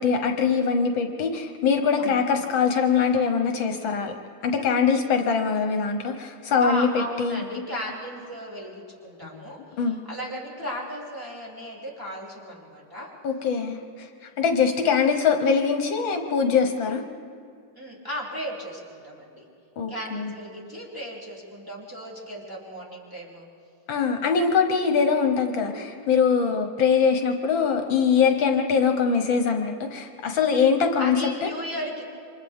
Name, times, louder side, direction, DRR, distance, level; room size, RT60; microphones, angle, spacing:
voice 1, 0.0-4.1 4.4-6.9 7.2-7.6 9.3-9.4 9.8-10.0 13.2-13.8 14.2-17.0 19.8-20.3 23.9-31.5, left 6 dB, 70° left, 5 dB, 1.7 m, -23 dB
voice 2, 2.0-2.3 6.6-13.1 17.8-19.4 19.9-23.5 31.0-32.0, equal, 10° right, -5 dB, 3.2 m, -36 dB
28.5 x 25.5 x 3.6 m, 2.4 s
omnidirectional pair, 2.2 m